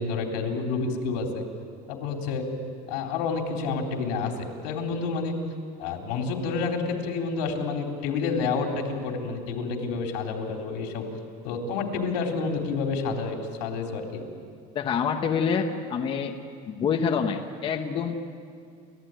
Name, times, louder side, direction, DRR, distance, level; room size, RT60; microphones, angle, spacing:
voice 1, 0.0-1.4 1.9-2.5 2.9-5.3 5.8-11.1 11.4-14.2, left 4 dB, 85° left, 2 dB, 3.7 m, -29 dB
voice 2, 14.7-16.4 16.7-18.1, left 6 dB, 25° left, 4 dB, 1.1 m, -26 dB
30.0 x 14.5 x 9.1 m, 2.3 s
cardioid pair, 175°, 20 cm